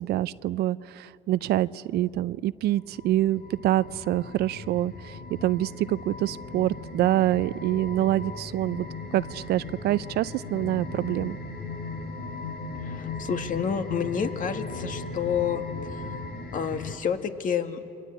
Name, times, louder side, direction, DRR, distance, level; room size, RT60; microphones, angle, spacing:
voice 1, 0.0-8.9 9.1-11.4, right 14 dB, 75° right, 18 dB, 0.6 m, -26 dB
sound 1, 2.7-17.0, left 3 dB, 70° left, 4.0 m, -38 dB
voice 2, 12.7-16.1 16.5-17.8, left 7 dB, 50° left, 7 dB, 1.9 m, -29 dB
29.0 x 24.0 x 8.6 m, 2.6 s
cardioid pair, 110°, 17 cm